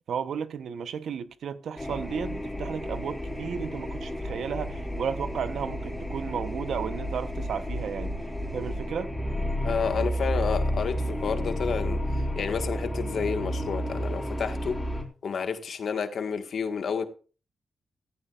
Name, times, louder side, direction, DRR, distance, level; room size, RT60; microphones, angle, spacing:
voice 1, 0.1-8.1 8.5-9.1, right 7 dB, 80° right, 0.9 m, -33 dB
sound 1, 1.8-15.0, equal, 15° left, 4.1 m, -31 dB
voice 2, 9.6-12.0 12.3-14.8 15.2-17.1, left 6 dB, 70° left, 1.5 m, -30 dB
15.5 x 14.0 x 2.4 m
cardioid pair, 60°, 0 cm